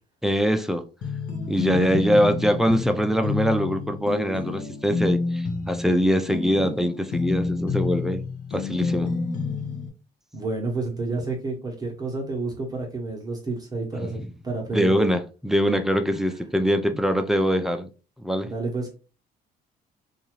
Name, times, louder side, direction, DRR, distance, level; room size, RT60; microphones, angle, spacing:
voice 1, 0.2-0.8 1.5-8.2 8.5-9.1 14.0-14.3 14.7-17.9 18.2-18.5, equal, ahead, 0.3 m, -23 dB
sound 1, 1.0-9.9, left 4 dB, 55° left, 0.8 m, -29 dB
voice 2, 10.3-14.9 16.3-16.4 18.4-18.9, right 3 dB, 20° right, 0.8 m, -30 dB
2.6 x 2.4 x 3.0 m
cardioid pair, 110°, 17 cm